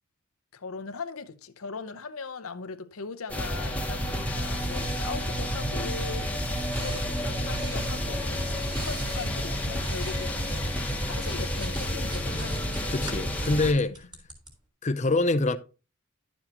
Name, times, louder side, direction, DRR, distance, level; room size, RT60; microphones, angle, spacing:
voice 1, 0.5-10.6 11.0-12.7, left 4 dB, 80° left, 0.8 m, -39 dB
sound 1, 3.3-13.7, equal, 5° left, 1.2 m, -30 dB
sound 2, 6.7-10.6 11.0-14.5, right 2 dB, 20° right, 2.5 m, -45 dB
voice 2, 12.9-14.1 14.8-15.6, left 2 dB, 35° left, 0.6 m, -25 dB
11.0 x 7.1 x 2.9 m
head